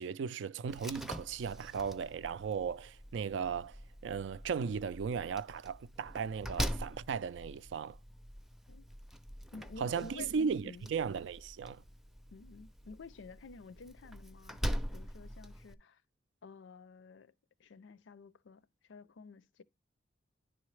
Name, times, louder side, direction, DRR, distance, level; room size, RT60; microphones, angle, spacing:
voice 1, 0.0-3.8 4.0-8.0 9.8-11.8, right 6 dB, 75° right, 0.3 m, -36 dB
Slam, 0.7-15.7, equal, ahead, 0.5 m, -43 dB
voice 2, 9.5-10.3 10.6-10.9 12.3-16.0 16.4-17.3 17.6-18.6 18.9-19.6, left 4 dB, 85° left, 0.5 m, -51 dB
10.0 x 3.8 x 3.1 m
head